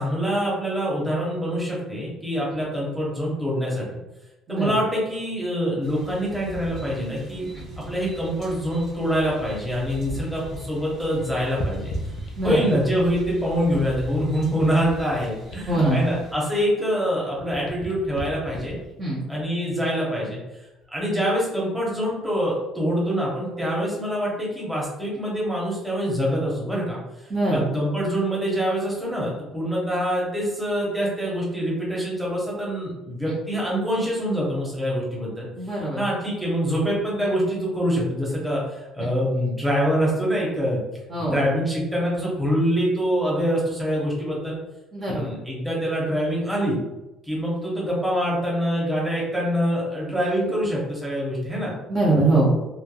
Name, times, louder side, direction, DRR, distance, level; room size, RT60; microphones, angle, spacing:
voice 1, 0.0-4.0 4.5-7.5 7.8-11.9 12.4-18.7 19.3-20.4 20.9-35.5 36.0-40.8 41.2-44.6 45.1-46.8 47.3-51.7, equal, 5° right, -5 dB, 0.9 m, -25 dB
sound 1, 5.8-16.3, left 1 dB, 50° right, 1.0 m, -40 dB
sound 2, 7.7-10.5 10.8-12.9 13.4-17.0 17.3-20.1 20.6-20.8, equal, 55° left, 0.4 m, -39 dB
voice 2, 12.4-12.7 15.7-16.0 19.0-19.2 27.3-27.6 35.6-36.0 39.0-39.1 41.1-41.4 44.9-45.3 51.9-52.5, right 2 dB, 30° right, -6 dB, 0.6 m, -22 dB
3.1 x 2.2 x 2.3 m, 1.0 s
cardioid pair, 135°, 0 cm